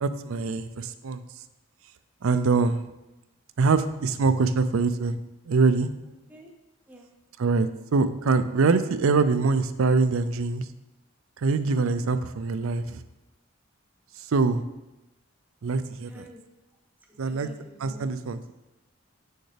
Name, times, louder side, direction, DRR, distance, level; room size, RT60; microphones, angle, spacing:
voice 1, 0.0-1.2 2.2-2.9 3.6-5.2 5.5-5.9 7.4-10.6 11.4-13.0 14.3-14.6 15.6-16.2 17.2-17.5 17.8-18.5, right 4 dB, 75° right, 12 dB, 0.4 m, -24 dB
voice 2, 16.0-16.4 17.1-18.1, equal, 10° right, 0 dB, 0.7 m, -47 dB
7.6 x 6.4 x 3.3 m, 0.99 s
head